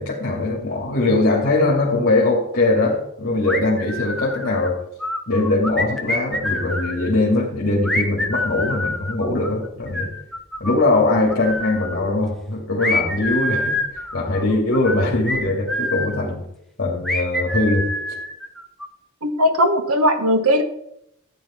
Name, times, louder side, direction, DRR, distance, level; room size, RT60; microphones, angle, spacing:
voice 1, 0.0-4.8 5.3-10.1 10.6-13.8 14.1-16.4 16.8-17.9, left 2 dB, 50° left, -3 dB, 2.7 m, -21 dB
sound 1, 3.4-4.7 5.0-7.1 7.8-11.0 11.3-12.0 12.8-16.2 17.0-18.9, left 1 dB, ahead, 1.2 m, -26 dB
voice 2, 19.2-20.6, equal, 80° right, 8 dB, 1.6 m, -18 dB
14.0 x 9.2 x 4.5 m, 0.77 s
head